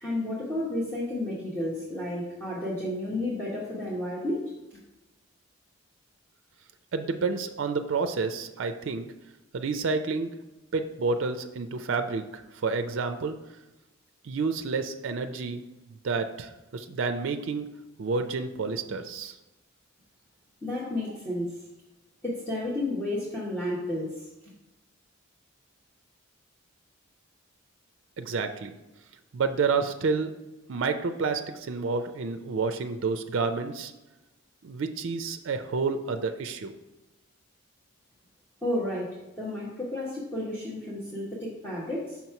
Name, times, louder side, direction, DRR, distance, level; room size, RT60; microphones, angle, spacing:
voice 1, 0.0-4.5 20.6-21.6 22.2-24.3 38.6-42.2, left 1 dB, 10° left, -8 dB, 0.9 m, -32 dB
voice 2, 6.9-9.1 9.5-10.3 10.7-13.3 14.2-15.6 16.0-17.7 18.0-19.4 28.2-28.7 29.3-30.3 30.7-33.9 34.6-36.7, right 4 dB, 60° right, 8 dB, 0.4 m, -29 dB
5.7 x 3.0 x 5.6 m, 1.0 s
head